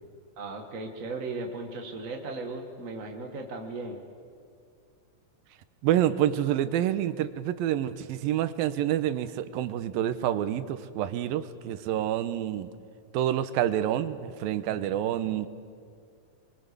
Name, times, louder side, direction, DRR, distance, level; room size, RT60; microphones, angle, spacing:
voice 1, 0.4-4.0, right 3 dB, 45° right, 2 dB, 1.0 m, -36 dB
voice 2, 5.8-12.7 13.1-15.5, right 11 dB, 90° right, 12 dB, 2.7 m, -28 dB
25.5 x 23.5 x 6.8 m, 2.2 s
omnidirectional pair, 4.1 m